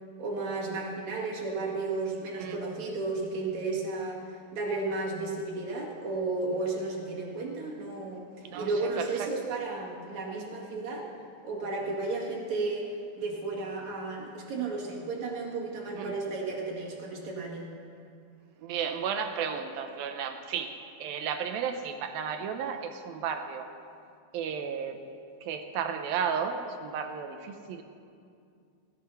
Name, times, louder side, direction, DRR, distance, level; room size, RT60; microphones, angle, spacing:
voice 1, 0.2-4.2 4.5-8.2 8.5-11.1 11.4-17.7, right 3 dB, 50° right, -3 dB, 2.9 m, -33 dB
voice 2, 8.4-9.3 16.0-16.2 18.6-23.7 24.3-25.0 25.4-27.8, right 7 dB, 75° right, 6 dB, 2.3 m, -33 dB
18.0 x 12.5 x 5.6 m, 2.4 s
omnidirectional pair, 4.8 m